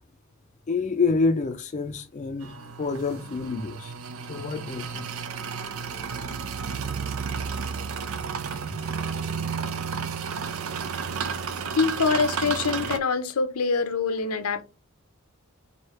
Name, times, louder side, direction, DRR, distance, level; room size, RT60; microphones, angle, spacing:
voice 1, 0.7-4.0 4.3-5.1, left 4 dB, 35° left, 0.4 m, -27 dB
sound 1, 2.4-13.0, right 6 dB, 75° right, 0.6 m, -32 dB
voice 2, 11.8-14.6, left 5 dB, 85° left, 0.6 m, -24 dB
3.2 x 2.7 x 4.3 m
head